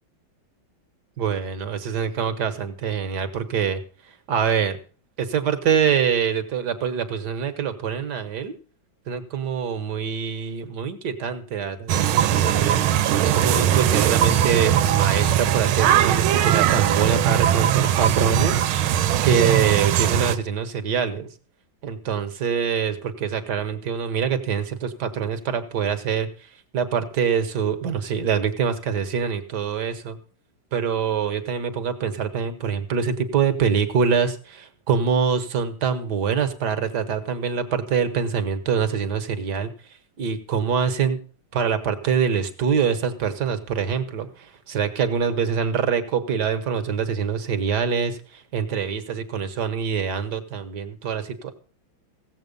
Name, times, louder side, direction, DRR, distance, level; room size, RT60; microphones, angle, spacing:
voice 1, 1.2-3.8 4.3-4.8 5.2-8.5 9.1-12.9 13.3-21.3 21.8-30.2 30.7-39.7 40.2-41.2 41.5-51.5, right 7 dB, 60° right, 10 dB, 1.6 m, -24 dB
sound 1, 11.9-20.4, right 11 dB, 85° right, 1.6 m, -20 dB
16.0 x 7.8 x 5.3 m, 0.40 s
omnidirectional pair, 2.2 m